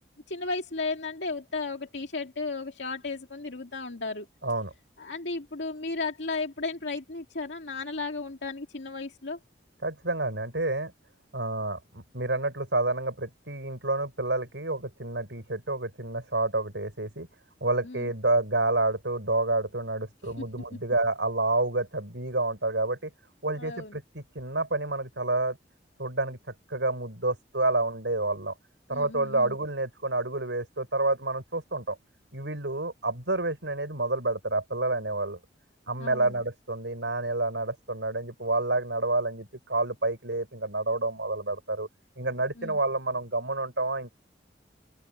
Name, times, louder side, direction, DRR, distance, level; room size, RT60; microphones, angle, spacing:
voice 1, 0.3-4.3 5.0-9.4 17.8-18.1 20.2-20.5 23.5-24.0 28.9-29.6 36.0-36.4 42.6-42.8, left 3 dB, 80° left, 2.2 m, -34 dB
voice 2, 4.4-4.7 9.8-10.9 11.3-17.3 17.6-23.1 23.4-25.6 26.0-26.4 26.7-28.5 28.9-32.0 32.3-35.4 35.9-41.9 42.2-44.1, right 2 dB, 85° right, 6.3 m, -29 dB
open air
head